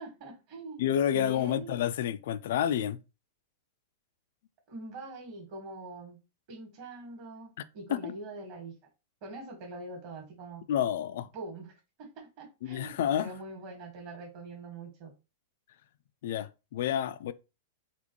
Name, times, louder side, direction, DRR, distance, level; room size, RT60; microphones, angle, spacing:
voice 1, 0.0-0.8 1.1-1.8 4.7-6.2 6.5-8.7 9.2-10.6 11.3-11.7 12.0-15.1, right 2 dB, 45° right, 1.9 m, -43 dB
voice 2, 0.8-3.0 7.9-8.1 10.7-11.3 12.6-13.4 16.2-17.3, left 10 dB, 65° left, 0.3 m, -29 dB
4.1 x 3.1 x 3.1 m
supercardioid pair, 160°, 0 cm